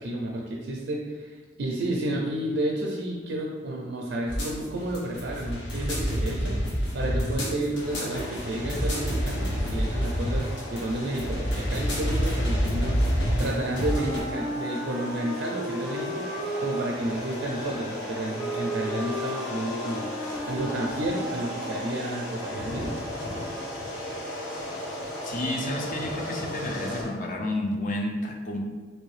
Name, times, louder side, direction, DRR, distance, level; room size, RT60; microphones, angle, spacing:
voice 1, 0.0-6.5 6.9-13.0 13.4-16.3 16.6-20.1 20.4-22.9, right 1 dB, 70° right, -2 dB, 0.4 m, -31 dB
sound 1, 4.3-14.2, equal, 70° left, 0.9 m, -28 dB
sound 2, 7.8-27.0, left 1 dB, 90° left, 1.1 m, -36 dB
Wind instrument woodwind instrument, 13.8-22.1, equal, 25° left, 0.9 m, -35 dB
voice 2, 25.2-28.6, left 1 dB, 45° left, 1 dB, 0.5 m, -30 dB
3.0 x 2.7 x 3.1 m, 1.4 s
head